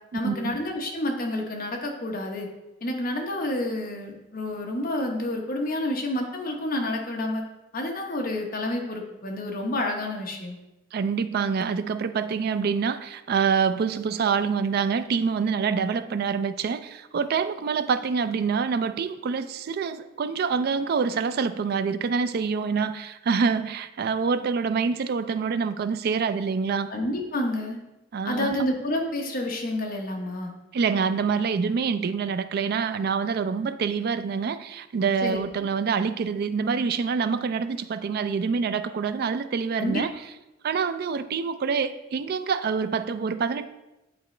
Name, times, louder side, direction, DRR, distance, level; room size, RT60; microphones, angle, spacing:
voice 1, 0.1-2.5 2.8-7.4 7.7-10.6 26.9-27.8 28.2-30.5 35.2-35.5 39.8-40.0, left 1 dB, 45° left, 1 dB, 1.0 m, -29 dB
voice 2, 10.9-26.9 28.1-28.5 30.7-40.1 40.6-43.7, right 5 dB, 50° right, 12 dB, 0.3 m, -26 dB
8.7 x 4.1 x 3.2 m, 0.98 s
head